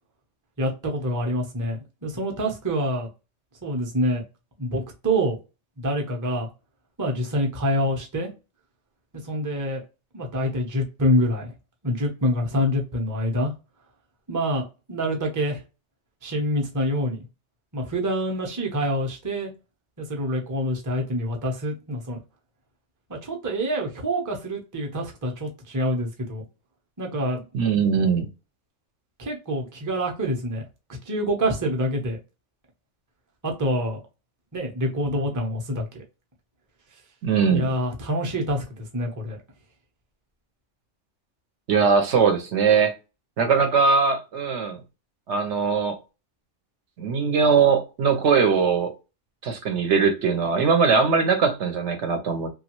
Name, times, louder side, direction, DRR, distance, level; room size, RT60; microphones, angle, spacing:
voice 1, 0.6-3.1 3.6-4.2 4.6-5.4 5.8-6.5 7.0-8.3 9.2-9.8 10.1-11.5 11.8-13.5 14.3-14.6 14.9-15.6 16.2-17.3 17.7-19.5 20.0-22.2 23.1-26.4 27.0-27.4 29.2-30.6 31.1-32.2 33.4-34.0 34.5-36.0 37.5-39.4, equal, 20° right, 0.6 m, -26 dB
voice 2, 27.5-28.3 37.2-37.7 41.7-42.9 43.4-44.8 45.3-46.0 47.0-48.9 49.4-52.5, right 5 dB, 70° right, 0.9 m, -21 dB
3.0 x 2.3 x 2.9 m
omnidirectional pair, 1.3 m